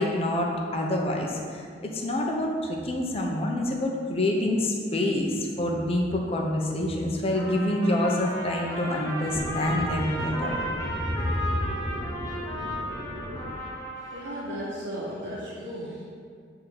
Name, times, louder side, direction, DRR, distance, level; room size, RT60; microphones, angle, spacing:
voice 1, 0.0-10.5 11.1-11.3, left 1 dB, 30° left, 0 dB, 0.8 m, -27 dB
Trumpet, 7.3-14.5, equal, 15° left, 1.1 m, -35 dB
sound 1, 9.3-13.5, equal, 35° right, 0.5 m, -37 dB
voice 2, 14.0-16.0, equal, 75° right, -10 dB, 1.3 m, -35 dB
8.3 x 3.7 x 4.7 m, 2.1 s
head